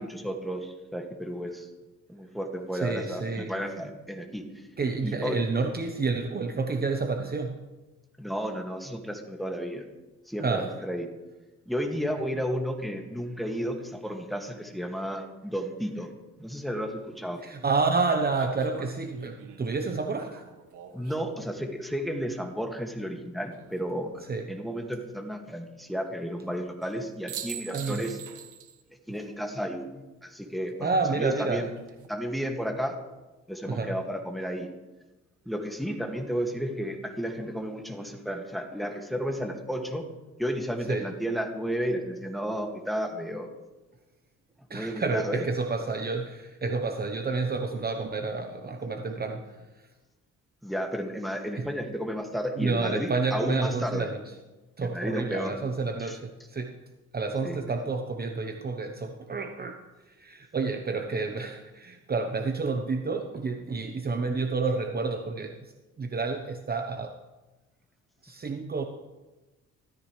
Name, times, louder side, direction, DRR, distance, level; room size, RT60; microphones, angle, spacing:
voice 1, 0.0-1.7 2.1-4.5 5.0-5.4 8.2-9.9 10.3-11.1 11.7-16.1 16.4-17.4 20.9-24.1 24.5-28.2 29.1-29.9 30.2-31.7 32.1-32.9 33.5-34.7 35.5-40.0 40.4-43.5 44.7-45.4 50.6-54.1 54.9-55.5 56.0-56.1 57.4-57.6, equal, ahead, 2 dB, 2.1 m, -32 dB
voice 2, 2.7-3.5 4.8-7.6 10.4-10.7 17.4-20.4 24.3-24.5 27.7-28.1 30.8-31.7 33.6-33.9 40.9-41.1 44.7-49.7 51.6-51.7 52.6-54.2 54.8-56.8 57.1-59.8 60.1-65.5 66.0-67.1 68.2-68.9, right 4 dB, 30° right, 5 dB, 1.0 m, -29 dB
sound 1, 16.9-17.0 18.3-21.6 23.4-24.0 26.8-27.0 27.3-28.8 29.1-29.2 31.6-32.1, right 8 dB, 85° right, 1.6 m, -44 dB
16.0 x 14.0 x 3.3 m, 1.1 s
cardioid pair, 90°, 30 cm